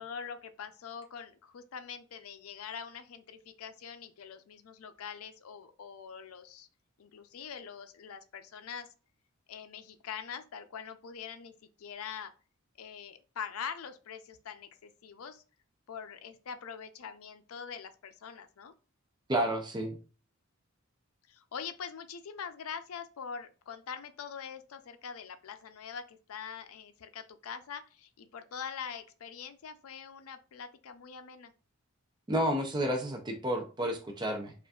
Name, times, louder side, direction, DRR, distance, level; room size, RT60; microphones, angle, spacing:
voice 1, 0.0-6.7 7.0-8.9 9.5-11.5 11.8-12.3 12.8-15.4 15.9-18.7 21.3-31.5, left 7 dB, 85° left, 10 dB, 0.5 m, -43 dB
voice 2, 19.3-20.0 32.3-34.5, right 1 dB, 20° right, 3 dB, 0.5 m, -31 dB
5.0 x 2.5 x 2.3 m, 0.35 s
head